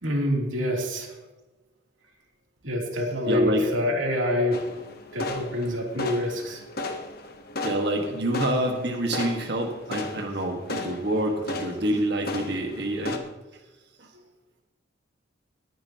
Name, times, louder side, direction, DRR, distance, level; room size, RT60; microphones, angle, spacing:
voice 1, 0.0-1.1 2.6-4.6 5.1-6.6, left 1 dB, 85° right, 0 dB, 3.0 m, -26 dB
voice 2, 3.2-3.6 7.6-13.2 14.0-14.1, right 1 dB, 55° right, 2 dB, 1.6 m, -27 dB
sound 1, 4.5-13.2, left 2 dB, 50° left, 1.2 m, -35 dB
19.5 x 9.3 x 3.0 m, 1.1 s
head